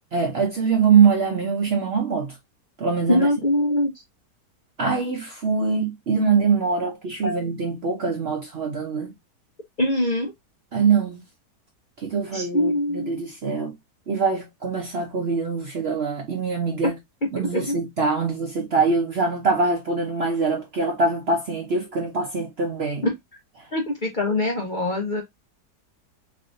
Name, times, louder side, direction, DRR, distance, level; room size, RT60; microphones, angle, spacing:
voice 1, 0.1-2.4 2.8-3.3 4.8-9.1 10.7-11.2 12.0-13.7 14.1-16.9 17.3-23.1 23.6-23.7, right 5 dB, 55° right, 0.7 m, -23 dB
voice 2, 3.1-3.9 7.2-7.4 9.8-10.3 12.3-13.2 17.3-17.8 23.0-23.1 23.7-25.2, left 1 dB, 40° left, 0.7 m, -23 dB
3.4 x 3.3 x 2.5 m
omnidirectional pair, 1.7 m